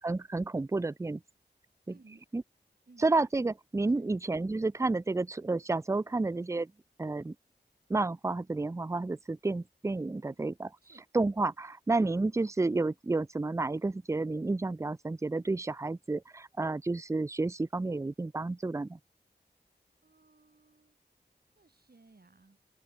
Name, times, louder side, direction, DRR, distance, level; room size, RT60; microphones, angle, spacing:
voice 1, 0.0-1.2 1.9-2.0 2.3-2.4 3.0-6.7 7.0-7.3 7.9-10.7 11.1-19.0, right 3 dB, 15° right, 0.4 m, -30 dB
voice 2, 1.9-2.2 2.9-3.0 3.9-4.0 10.2-10.4 10.8-11.0 20.0-21.0 21.6-22.6, right 3 dB, 60° right, 3.6 m, -60 dB
open air
wide cardioid pair, 50°, 18 cm